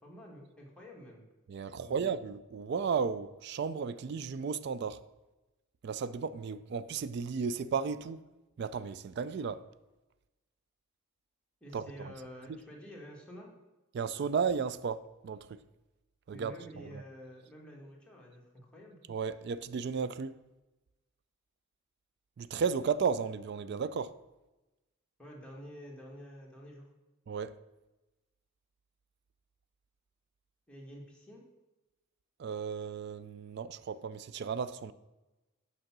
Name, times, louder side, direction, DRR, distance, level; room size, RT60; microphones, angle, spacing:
voice 1, 0.0-1.2 1.8-2.0 11.6-13.5 16.3-19.0 25.2-26.9 30.7-31.4, equal, 5° left, 1.5 m, -49 dB
voice 2, 1.5-5.0 5.8-8.2 8.6-9.6 11.7-12.1 13.9-15.6 16.3-17.0 19.1-20.4 22.4-24.1 27.3-27.5 32.4-34.9, right 6 dB, 50° right, 0.3 m, -34 dB
6.5 x 5.6 x 5.9 m
head